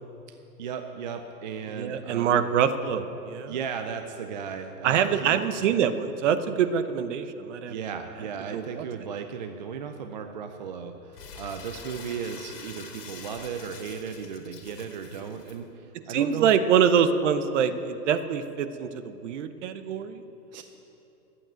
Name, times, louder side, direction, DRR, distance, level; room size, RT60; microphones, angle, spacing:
voice 1, 0.3-2.5 3.5-5.4 7.7-16.5 20.5-20.6, right 6 dB, 30° right, 6 dB, 0.4 m, -36 dB
voice 2, 1.8-3.5 4.8-7.7 8.5-8.8 16.1-20.2, right 8 dB, 45° right, 11 dB, 0.9 m, -25 dB
Crumpling crinkling, 11.1-15.6, left 5 dB, 70° left, 2.2 m, -45 dB
12.0 x 8.7 x 8.9 m, 3.0 s
hypercardioid pair, 145°, 49 cm